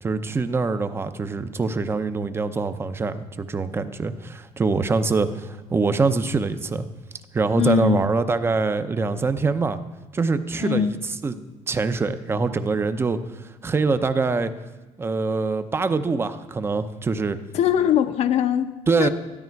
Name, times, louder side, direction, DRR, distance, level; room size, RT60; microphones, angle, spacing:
voice 1, 0.0-6.8 7.3-9.8 10.1-11.4 11.7-14.5 15.0-17.4 18.9-19.1, right 4 dB, 20° right, 11 dB, 0.6 m, -24 dB
voice 2, 7.6-8.0 10.6-11.0 17.5-19.1, left 9 dB, 60° left, 8 dB, 0.8 m, -21 dB
13.0 x 12.0 x 4.6 m, 1.2 s
cardioid pair, 140°, 12 cm